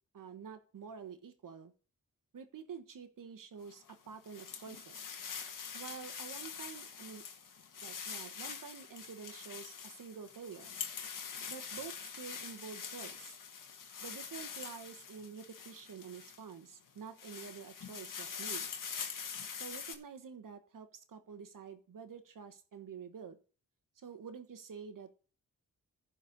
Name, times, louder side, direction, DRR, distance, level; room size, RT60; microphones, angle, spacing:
voice 1, 0.1-1.7 2.3-5.1 5.7-7.2 7.8-10.7 11.5-13.4 14.0-18.7 19.5-23.4 24.0-25.1, right 6 dB, 75° right, 9 dB, 1.4 m, -48 dB
sound 1, 3.7-16.5 17.0-19.9, left 6 dB, 70° left, 1.4 m, -44 dB
10.5 x 4.6 x 8.0 m, 0.38 s
cardioid pair, 55°, 33 cm